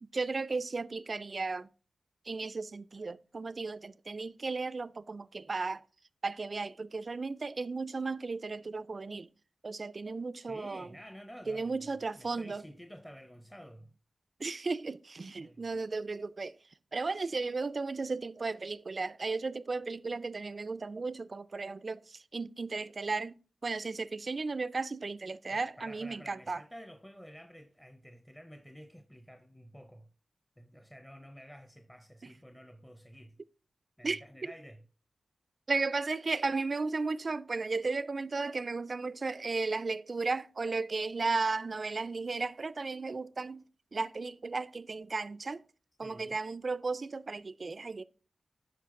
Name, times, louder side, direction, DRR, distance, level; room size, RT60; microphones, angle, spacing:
voice 1, 0.0-1.7 2.3-5.8 6.2-9.3 9.6-10.9 11.5-12.6 14.4-16.5 16.9-23.3 23.6-26.6 34.0-34.2 35.7-43.6 43.9-45.6 46.0-48.0, right 3 dB, 55° right, 0.4 m, -35 dB
voice 2, 10.4-14.0 15.3-15.7 25.5-30.1 30.6-33.4 34.0-34.8 46.0-46.4, equal, 10° left, 0.7 m, -51 dB
12.0 x 4.6 x 3.7 m
cardioid pair, 45°, 0 cm